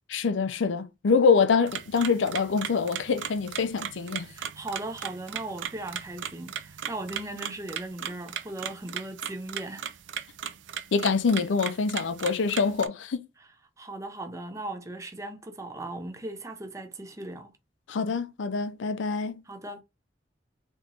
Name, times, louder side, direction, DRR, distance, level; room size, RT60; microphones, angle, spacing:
voice 1, 0.1-4.3 10.9-13.3 17.9-19.4, left 5 dB, 80° left, 0.5 m, -25 dB
sound 1, 1.7-12.9, right 9 dB, 80° right, 0.4 m, -38 dB
voice 2, 4.2-9.9 13.8-17.5 19.5-19.8, right 2 dB, 15° right, 0.5 m, -38 dB
3.5 x 3.0 x 2.7 m
head